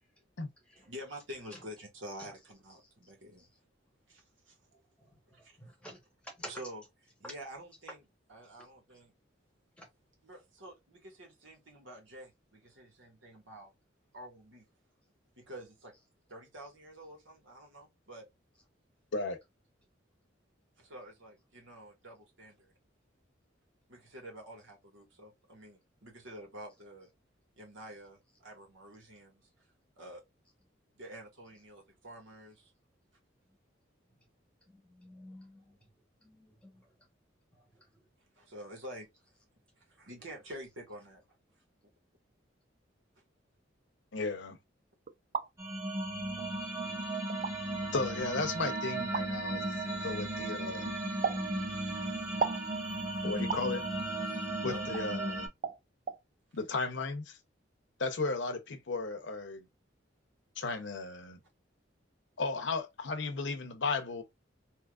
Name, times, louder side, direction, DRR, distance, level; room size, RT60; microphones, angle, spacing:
voice 1, 0.9-3.5 4.1-4.8 5.3-5.6 6.4-6.8 7.2-9.1 10.2-13.7 14.1-14.6 15.3-15.9 16.3-18.3 20.8-22.7 23.9-27.1 27.5-29.4 30.0-30.2 30.9-32.7 38.3-39.1 39.8-41.2 53.1-53.4 54.7-54.9, equal, 80° right, 1.7 m, -48 dB
voice 2, 5.6-6.0 6.2-6.5 9.8-9.9 34.7-35.7 36.2-36.8, equal, 5° left, 1.1 m, -49 dB
voice 3, 44.1-44.6 47.9-49.6 50.0-50.9 53.2-53.8 54.6-55.5 56.5-57.4 58.0-59.7 60.6-61.4 62.4-64.2, left 3 dB, 70° left, 0.7 m, -35 dB
sound 1, 45.1-45.5 46.4-46.5 47.3-47.5 49.1-49.3 51.2-51.4 52.4-52.7 53.5-53.7 54.9-55.1 55.6-55.8 56.1-56.2, right 6 dB, 40° right, 0.3 m, -33 dB
sound 2, 45.6-55.5, right 1 dB, 15° right, 1.1 m, -35 dB
3.6 x 2.8 x 2.3 m
head